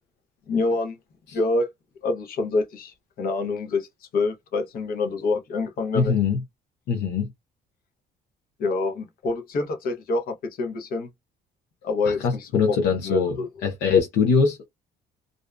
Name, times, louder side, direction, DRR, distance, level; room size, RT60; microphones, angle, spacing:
voice 1, 0.5-1.0 1.3-1.7 2.0-3.9 4.1-6.2 8.6-11.1 11.8-12.8 13.0-13.5, left 3 dB, 60° left, 0.9 m, -26 dB
voice 2, 5.9-6.4 6.9-7.3 12.1-13.4 13.6-14.7, left 5 dB, 85° left, 0.7 m, -22 dB
2.6 x 2.2 x 2.3 m
cardioid pair, 110°, 17 cm